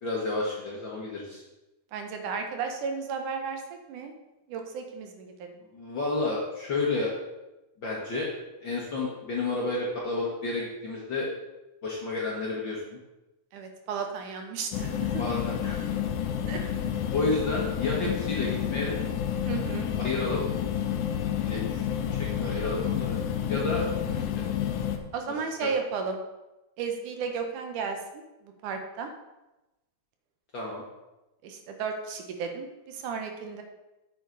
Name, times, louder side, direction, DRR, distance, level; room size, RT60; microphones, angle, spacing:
voice 1, 0.0-1.4 5.7-7.1 7.8-8.3 8.6-11.3 11.8-13.0 15.2-16.0 16.6-16.7 17.1-19.0 20.0-20.4 21.4-23.2 23.5-24.5 25.6-25.7 30.5-30.8, left 3 dB, 50° left, -4 dB, 1.5 m, -31 dB
voice 2, 1.9-4.1 4.5-5.6 13.5-15.2 16.4-16.6 19.5-19.9 25.1-26.2 26.8-29.1 31.4-33.6, right 5 dB, 75° right, 4 dB, 2.3 m, -34 dB
sound 1, 14.7-25.0, left 9 dB, 75° left, 2.0 m, -30 dB
8.0 x 7.8 x 4.0 m, 1.0 s
omnidirectional pair, 3.7 m